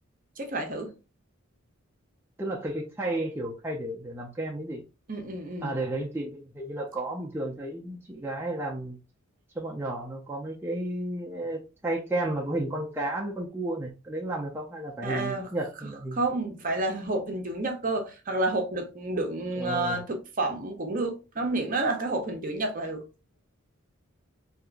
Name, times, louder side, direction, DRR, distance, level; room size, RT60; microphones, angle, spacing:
voice 1, 0.4-0.9 5.1-5.7 15.0-15.5 16.1-23.0, right 2 dB, 40° right, 0.8 m, -30 dB
voice 2, 2.4-4.8 5.6-9.0 9.6-16.2 19.5-20.0, right 1 dB, 10° right, 0.5 m, -32 dB
3.5 x 2.8 x 2.5 m
head